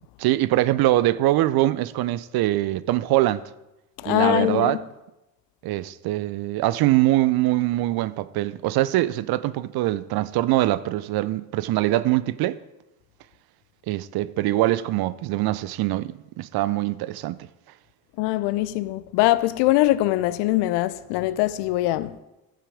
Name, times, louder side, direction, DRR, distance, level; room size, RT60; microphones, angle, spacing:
voice 1, 0.2-3.4 4.1-4.8 5.6-12.6 13.9-17.5, right 16 dB, 55° right, 0.6 m, -23 dB
voice 2, 4.0-4.8 18.2-22.1, left 16 dB, 65° left, 0.6 m, -22 dB
14.0 x 5.9 x 4.9 m
hypercardioid pair, 55°, 45 cm